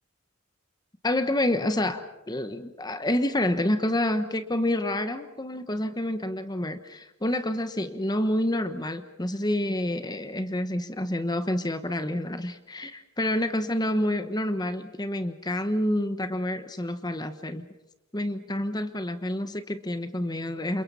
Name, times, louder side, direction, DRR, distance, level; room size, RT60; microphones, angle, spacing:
voice 1, 1.0-17.7 18.1-20.8, left 1 dB, 20° left, 9 dB, 1.1 m, -28 dB
29.5 x 28.0 x 5.6 m, 0.91 s
head